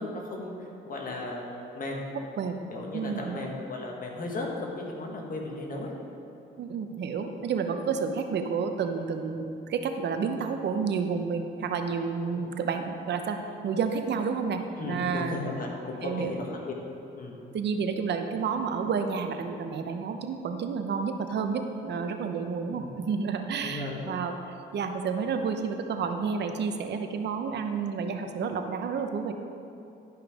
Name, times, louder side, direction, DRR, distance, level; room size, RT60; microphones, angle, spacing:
voice 1, 0.0-2.1 2.7-5.9 12.3-12.5 14.8-16.7 17.1-17.4 22.7-23.0 23.6-24.0, left 2 dB, 45° left, -1 dB, 1.7 m, -36 dB
voice 2, 2.9-3.4 6.6-13.4 13.6-15.4 16.0-16.3 17.5-24.3 24.7-29.3, right 5 dB, 60° right, 6 dB, 0.8 m, -30 dB
11.5 x 5.7 x 5.0 m, 2.7 s
cardioid pair, 90°, 20 cm